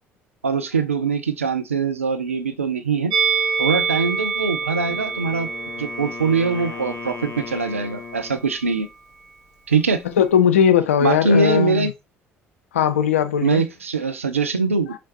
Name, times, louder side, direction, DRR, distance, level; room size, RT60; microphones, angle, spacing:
voice 1, 0.4-3.1 3.6-5.5 5.8-8.9 9.7-10.0 11.0-11.9 13.4-14.9, right 4 dB, 90° right, 0.4 m, -22 dB
Musical instrument, 3.1-8.3 8.6-8.8, right 5 dB, 60° right, 1.2 m, -27 dB
Wind instrument woodwind instrument, 4.7-8.6, left 6 dB, 40° left, 0.7 m, -37 dB
voice 2, 10.2-11.9 12.7-13.6, left 9 dB, 80° left, 0.4 m, -18 dB
5.0 x 3.1 x 2.9 m
figure-of-eight pair, 55°, 7 cm